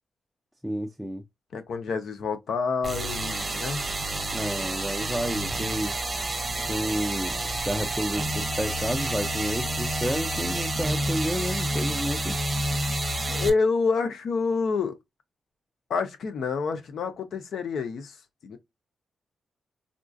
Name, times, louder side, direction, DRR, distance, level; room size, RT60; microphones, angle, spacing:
voice 1, 0.6-1.2 4.3-6.0 6.7-7.4 7.7-12.3, equal, ahead, 0.4 m, -30 dB
voice 2, 1.5-3.8 13.3-15.0 15.9-18.2 18.4-18.6, left 4 dB, 75° left, 0.6 m, -28 dB
sound 1, 2.8-13.5, right 1 dB, 25° right, 0.8 m, -29 dB
3.7 x 2.3 x 2.5 m
cardioid pair, 90°, 0 cm